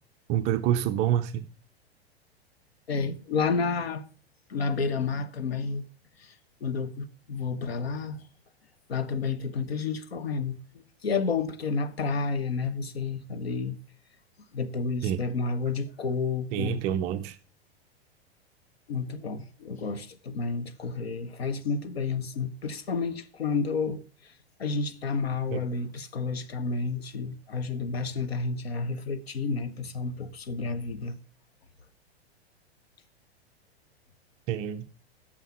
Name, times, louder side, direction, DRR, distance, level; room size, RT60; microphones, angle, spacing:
voice 1, 0.3-1.5 15.0-15.3 16.5-17.4 25.5-25.6 34.5-34.9, right 11 dB, 20° right, 0.4 m, -27 dB
voice 2, 2.9-4.0 4.5-5.9 6.2-6.3 6.6-8.2 8.9-13.8 14.5-16.9 18.9-24.3 24.6-31.2, left 4 dB, 70° left, 1.0 m, -30 dB
9.1 x 6.6 x 5.6 m
figure-of-eight pair, 100°, 32 cm